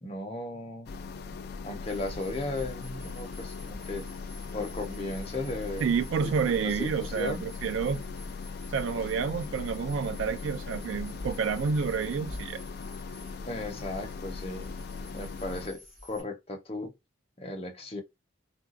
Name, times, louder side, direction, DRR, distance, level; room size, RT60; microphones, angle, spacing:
voice 1, 0.0-0.9 1.6-4.1 4.5-5.9 6.2-6.3 6.6-7.5 13.5-14.8 15.1-16.9 17.4-18.0, left 2 dB, 30° left, 0.8 m, -36 dB
sound 1, 0.9-15.7, left 4 dB, 50° left, 0.3 m, -39 dB
sound 2, 1.8-16.2, equal, 35° right, 1.8 m, -49 dB
voice 2, 5.8-8.0 8.7-12.6, right 6 dB, 75° right, 0.3 m, -29 dB
3.9 x 2.3 x 2.5 m
head